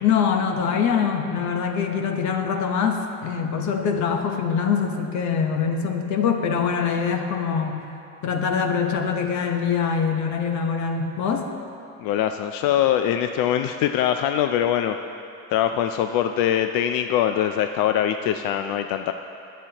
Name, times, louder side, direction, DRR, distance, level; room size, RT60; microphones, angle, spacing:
voice 1, 0.0-7.8 8.2-11.5, left 6 dB, 60° left, 4 dB, 1.0 m, -24 dB
voice 2, 12.0-15.0 15.5-19.1, left 10 dB, 80° left, 7 dB, 0.5 m, -22 dB
22.0 x 7.4 x 2.9 m, 2.7 s
cardioid pair, 170°, 33 cm